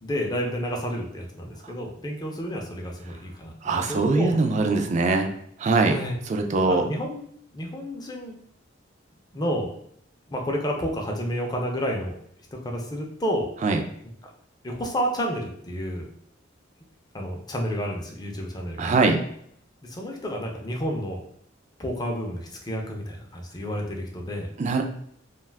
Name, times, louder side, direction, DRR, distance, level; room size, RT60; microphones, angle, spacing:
voice 1, 0.0-3.5 3.9-4.3 5.8-6.2 6.8-7.2 7.5-8.3 9.3-9.7 10.3-12.2 12.5-13.5 14.6-16.1 17.1-18.9 19.8-21.2 21.8-24.5, equal, 20° left, 0 dB, 0.5 m, -30 dB
voice 2, 3.6-5.3 5.6-6.0 6.3-6.8 13.6-13.8 18.8-19.2 24.6-24.8, right 3 dB, 40° right, 4 dB, 0.3 m, -22 dB
2.4 x 2.3 x 3.3 m, 0.67 s
head